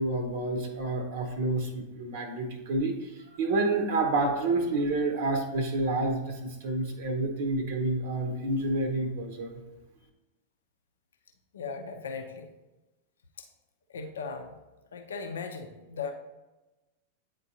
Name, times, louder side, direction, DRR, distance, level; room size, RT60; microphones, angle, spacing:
voice 1, 0.0-9.6, right 2 dB, 55° right, 5 dB, 0.8 m, -29 dB
voice 2, 11.5-12.5 13.4-13.5 13.9-14.6 14.9-16.1, left 5 dB, 70° left, 5 dB, 0.5 m, -37 dB
9.1 x 3.7 x 2.7 m, 1.1 s
figure-of-eight pair, 90°, 0 cm